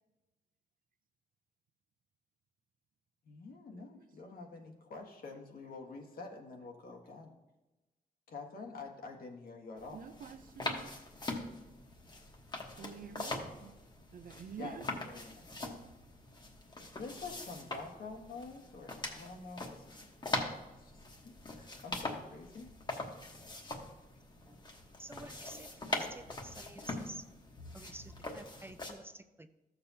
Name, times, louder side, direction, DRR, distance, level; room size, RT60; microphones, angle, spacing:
voice 1, 3.2-7.3 8.3-10.0 13.5-13.7 14.6-15.4 17.0-19.8 20.8-22.7, left 3 dB, 75° left, 1.5 m, -47 dB
sound 1, 9.8-28.9, left 2 dB, 30° left, 1.2 m, -42 dB
voice 2, 9.9-10.9 12.8-13.7 14.1-15.1 15.6-15.8, right 7 dB, 70° right, 0.6 m, -48 dB
voice 3, 25.0-27.3 27.7-29.5, right 1 dB, 15° right, 0.4 m, -50 dB
14.5 x 6.9 x 2.8 m
wide cardioid pair, 130°, 15 cm